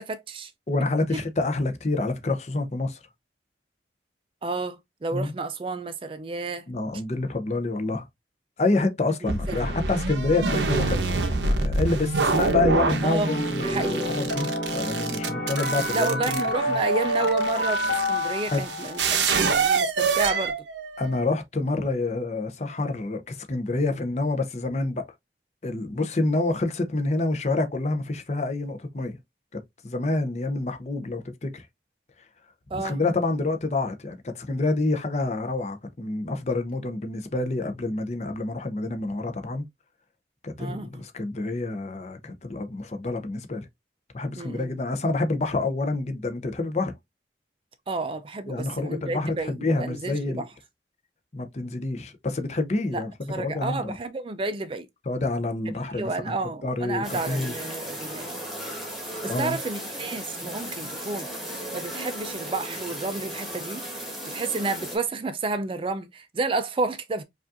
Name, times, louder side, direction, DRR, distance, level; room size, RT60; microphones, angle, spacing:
voice 1, 0.0-0.5 4.4-6.6 9.5-9.6 13.0-13.3 13.6-14.1 15.9-20.5 32.7-33.0 40.6-41.0 44.4-44.7 47.9-50.4 52.9-53.0 53.3-54.9 55.9-58.3 59.2-61.3 61.7-63.8 64.3-67.2, right 3 dB, 30° right, 0.4 m, -31 dB
voice 2, 0.7-3.0 5.1-5.3 6.7-8.1 8.6-16.4 18.5-18.6 21.0-25.1 25.6-29.2 29.5-31.7 32.7-39.6 40.4-43.7 44.1-46.9 48.5-50.4 51.3-53.1 53.4-54.0 55.1-56.4 56.6-57.5 59.2-59.6, left 2 dB, 40° left, 0.6 m, -27 dB
sound 1, 9.3-21.3, right 4 dB, 85° right, 0.7 m, -27 dB
sound 2, 12.6-19.6, equal, 65° left, 1.6 m, -28 dB
sound 3, 57.0-65.0, right 1 dB, ahead, 1.3 m, -36 dB
5.0 x 2.4 x 2.5 m
head